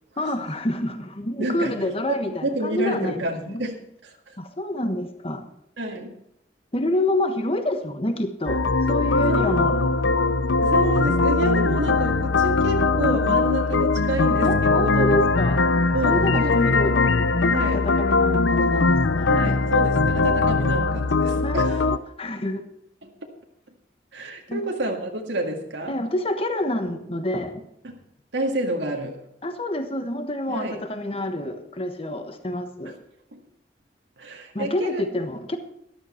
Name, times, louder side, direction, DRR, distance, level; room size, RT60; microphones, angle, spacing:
voice 1, 0.2-3.6 4.4-5.4 6.7-8.6 8.9-9.7 14.4-15.6 16.0-17.1 17.7-19.3 21.4-22.6 24.5-24.6 25.9-27.6 29.4-33.0 34.5-35.6, left 1 dB, 30° left, 7 dB, 1.2 m, -27 dB
voice 2, 1.4-1.8 2.1-4.4 5.8-6.2 9.3-9.9 10.6-15.2 15.9-16.8 17.4-17.8 19.2-21.8 23.0-23.1 24.1-26.0 27.8-28.0 28.3-29.3 30.5-30.8 32.9-33.0 33.3-33.4 34.2-35.1, right 1 dB, 85° right, 1 dB, 1.9 m, -29 dB
sound 1, 8.5-22.0, left 3 dB, 90° left, 0.6 m, -21 dB
13.5 x 12.0 x 4.4 m, 0.78 s
head